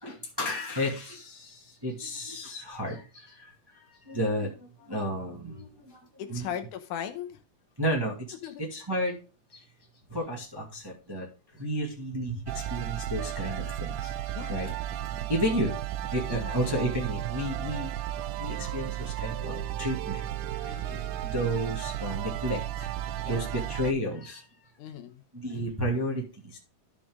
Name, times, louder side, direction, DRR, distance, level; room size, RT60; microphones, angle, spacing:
voice 1, 0.0-6.5 7.8-8.1 8.6-9.2 9.5-9.6 10.1-11.3 11.5-14.7 15.1-17.9 18.4-20.2 20.6-22.9 23.2-24.5 25.3-26.6, equal, 10° right, -1 dB, 1.3 m, -32 dB
voice 2, 6.2-7.4 8.4-8.6 14.3-14.6 16.3-16.6 20.6-21.3 23.2-23.5 24.8-25.2, left 9 dB, 80° left, 7 dB, 2.3 m, -38 dB
sound 1, 12.5-23.9, right 11 dB, 85° right, 2.1 m, -34 dB
13.0 x 5.2 x 3.7 m, 0.33 s
omnidirectional pair, 3.6 m